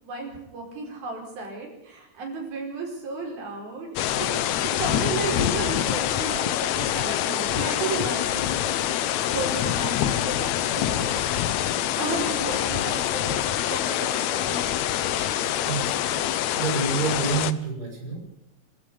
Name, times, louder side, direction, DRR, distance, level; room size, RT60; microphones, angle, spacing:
voice 1, 0.0-3.9 4.1-4.3 4.8-11.4 12.0-13.4 13.7-14.7, right 3 dB, 85° right, 0 dB, 7.0 m, -34 dB
sound 1, 4.0-17.5, left 11 dB, 75° left, 1.7 m, -25 dB
voice 2, 15.6-18.3, right 4 dB, 25° right, -1 dB, 6.9 m, -29 dB
25.5 x 13.0 x 8.4 m, 0.83 s
omnidirectional pair, 4.1 m